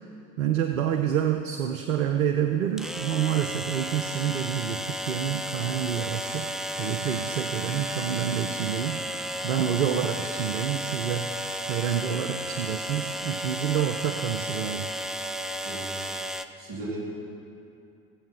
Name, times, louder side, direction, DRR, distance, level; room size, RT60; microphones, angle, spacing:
voice 1, 0.4-6.5 6.8-14.9, right 9 dB, 80° right, 6 dB, 0.6 m, -28 dB
sound 1, 0.7-0.8 2.8-16.4, equal, ahead, 0.4 m, -33 dB
voice 2, 15.6-16.1 16.6-17.0, right 2 dB, 60° right, -4 dB, 3.3 m, -37 dB
16.5 x 7.7 x 5.8 m, 2.7 s
figure-of-eight pair, 50°, 39 cm